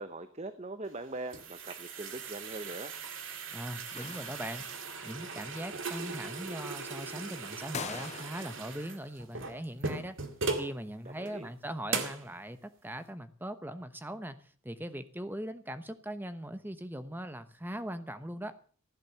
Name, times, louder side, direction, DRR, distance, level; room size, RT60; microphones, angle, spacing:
voice 1, 0.0-2.9 11.0-11.5, right 2 dB, 30° right, 11 dB, 0.8 m, -41 dB
sound 1, 0.9-10.7 11.2-11.3 11.9-12.3, right 4 dB, 60° right, 2.2 m, -39 dB
voice 2, 3.5-4.7 5.0-10.2 10.6-14.4 14.6-18.6, right 1 dB, 10° right, 11 dB, 1.1 m, -40 dB
sound 2, 3.9-4.9 7.7-8.7, left 6 dB, 30° left, 0.6 m, -42 dB
15.5 x 10.5 x 7.0 m, 0.43 s
head